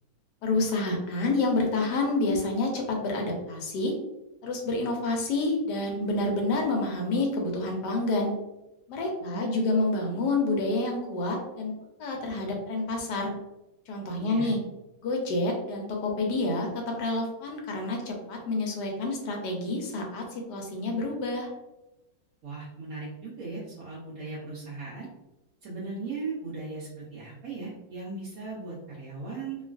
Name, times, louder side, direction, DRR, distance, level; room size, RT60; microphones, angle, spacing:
voice 1, 0.4-3.9 4.4-8.3 8.9-11.7 12.0-13.3 13.9-14.6 15.0-21.5, left 2 dB, 75° left, 1 dB, 1.1 m, -28 dB
voice 2, 9.2-9.8 14.2-14.5 22.4-25.1 25.6-29.6, right 3 dB, 60° right, -8 dB, 1.0 m, -37 dB
3.0 x 2.3 x 2.4 m, 0.95 s
omnidirectional pair, 2.0 m